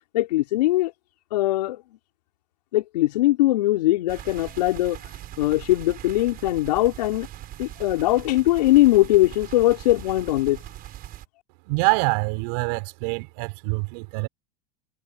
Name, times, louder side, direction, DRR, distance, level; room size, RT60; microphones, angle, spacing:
voice 1, 0.1-0.9 1.3-1.8 2.7-5.0 5.4-7.3 7.6-10.6, left 16 dB, 80° left, 3.9 m, -21 dB
sound 1, 4.1-11.3, right 13 dB, 45° right, 6.0 m, -41 dB
voice 2, 11.7-14.3, right 32 dB, 65° right, 4.6 m, -25 dB
hypercardioid pair, 95°, 21 cm